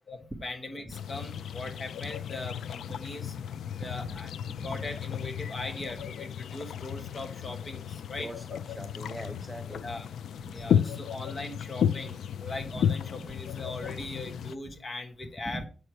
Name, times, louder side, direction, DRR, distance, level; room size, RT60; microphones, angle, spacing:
voice 1, 0.1-3.3 3.8-4.3 4.6-8.3 9.8-10.1 10.5-15.6, left 2 dB, 30° left, 4 dB, 1.3 m, -40 dB
sound 1, 0.9-14.6, left 8 dB, 85° left, 0.4 m, -33 dB
voice 2, 4.5-4.8 8.2-9.8 10.5-11.0 13.8-13.9 15.5-15.6, right 1 dB, 5° right, 6 dB, 0.7 m, -41 dB
7.8 x 6.4 x 4.4 m, 0.36 s
wide cardioid pair, 170°, 0 cm